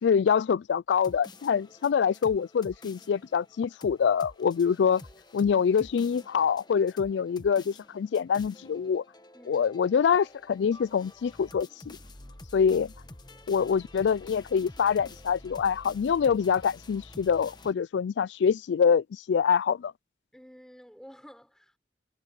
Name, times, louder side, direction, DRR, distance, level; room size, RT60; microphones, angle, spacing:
voice 1, 0.0-5.0 5.3-9.0 9.5-12.0 12.5-12.9 13.5-19.9, left 6 dB, 80° left, 0.3 m, -25 dB
sound 1, 0.9-17.7, left 2 dB, 25° left, 1.2 m, -49 dB
voice 2, 9.3-9.7 13.3-13.5 20.3-21.8, equal, 5° left, 4.6 m, -51 dB
head